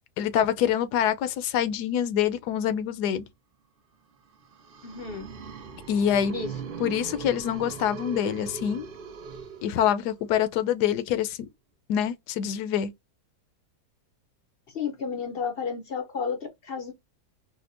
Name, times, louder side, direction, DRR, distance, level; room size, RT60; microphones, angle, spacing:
voice 1, 0.2-3.3 5.9-6.3 6.8-8.9 9.6-11.5 11.9-12.9, left 9 dB, 80° left, 1.1 m, -25 dB
sound 1, 4.3-10.2, right 5 dB, 60° right, 0.6 m, -40 dB
voice 2, 4.8-5.3 6.3-6.6 14.7-16.9, left 5 dB, 60° left, 0.6 m, -32 dB
4.2 x 2.1 x 2.5 m
omnidirectional pair, 1.8 m